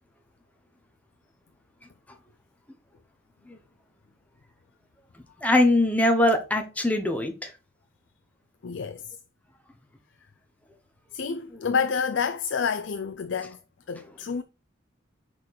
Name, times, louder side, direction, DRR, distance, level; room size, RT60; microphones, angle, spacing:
voice 1, 5.4-7.5, left 1 dB, 5° left, 0.9 m, -22 dB
voice 2, 8.6-9.2 11.1-13.6 13.9-14.4, left 6 dB, 60° left, 0.4 m, -28 dB
6.1 x 4.5 x 4.6 m
head